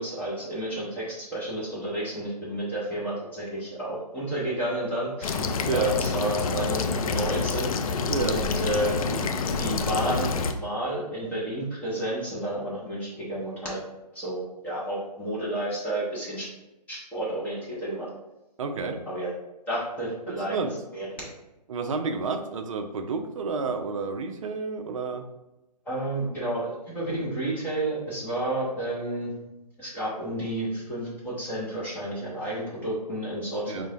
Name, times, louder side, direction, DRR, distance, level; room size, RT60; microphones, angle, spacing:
voice 1, 0.0-5.4 5.7-7.7 8.3-9.2 9.6-10.3 10.6-13.8 14.1-16.5 16.9-18.1 18.8-19.3 19.7-20.6 20.9-21.1 25.9-29.3 29.8-33.9, right 1 dB, 5° left, -8 dB, 0.6 m, -31 dB
sound 1, 5.2-10.5, left 4 dB, 55° left, 0.4 m, -27 dB
voice 2, 18.6-19.0 20.3-20.8 21.7-25.3 33.7-33.9, right 4 dB, 50° right, 6 dB, 0.4 m, -30 dB
4.5 x 2.1 x 2.8 m, 0.98 s
hypercardioid pair, 145°, 21 cm